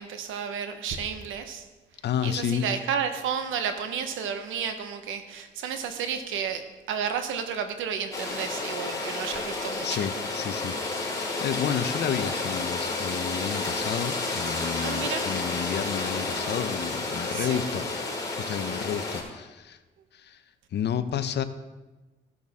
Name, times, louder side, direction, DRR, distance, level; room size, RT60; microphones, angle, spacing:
voice 1, 0.0-1.6 2.2-10.0 14.8-15.3 17.3-17.6, right 7 dB, 80° right, 8 dB, 1.0 m, -32 dB
voice 2, 2.0-2.7 9.8-17.9 18.4-19.8 20.1-20.4 20.7-21.4, left 8 dB, 60° left, 11 dB, 0.7 m, -31 dB
sound 1, 8.1-19.2, left 3 dB, 15° left, 3.6 m, -31 dB
15.5 x 6.4 x 3.6 m, 1.2 s
cardioid pair, 90°, 20 cm